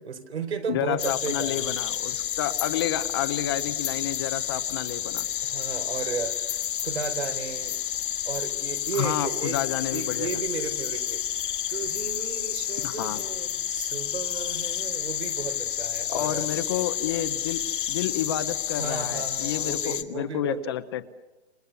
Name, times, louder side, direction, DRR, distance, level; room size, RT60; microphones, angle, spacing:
voice 1, 0.0-1.8 5.4-7.8 8.3-9.6 9.9-11.2 11.7-16.5 18.8-20.7, right 6 dB, 85° right, 6 dB, 4.6 m, -34 dB
voice 2, 0.7-5.3 8.9-10.3 12.8-13.2 16.1-17.6 17.9-21.1, left 11 dB, 25° left, 12 dB, 0.8 m, -30 dB
sound 1, 1.0-20.0, left 10 dB, 50° left, 1.8 m, -30 dB
28.5 x 25.0 x 7.0 m, 1.0 s
hypercardioid pair, 170°, 32 cm